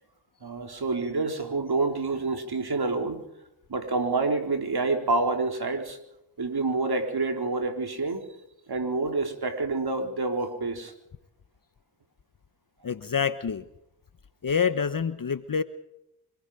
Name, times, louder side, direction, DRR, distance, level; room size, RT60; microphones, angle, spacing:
voice 1, 0.4-3.2 3.7-6.0 6.4-8.2 8.7-10.9, right 3 dB, 50° right, 5 dB, 4.2 m, -28 dB
voice 2, 12.8-13.6 14.4-15.6, left 6 dB, 40° left, 12 dB, 1.2 m, -27 dB
25.5 x 20.5 x 5.1 m, 0.84 s
supercardioid pair, 45°, 49 cm